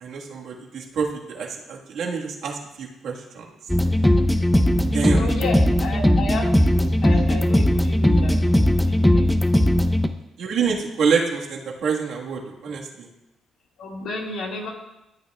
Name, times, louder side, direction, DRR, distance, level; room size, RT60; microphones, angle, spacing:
voice 1, 0.0-3.4 4.9-5.2 10.4-13.1, right 5 dB, 75° right, -1 dB, 1.7 m, -26 dB
sound 1, 3.7-10.1, equal, 5° left, 0.7 m, -18 dB
voice 2, 5.1-8.6 9.0-9.5 13.8-14.7, left 3 dB, 75° left, -1 dB, 2.1 m, -32 dB
13.5 x 8.2 x 2.4 m, 0.91 s
supercardioid pair, 70°, 0 cm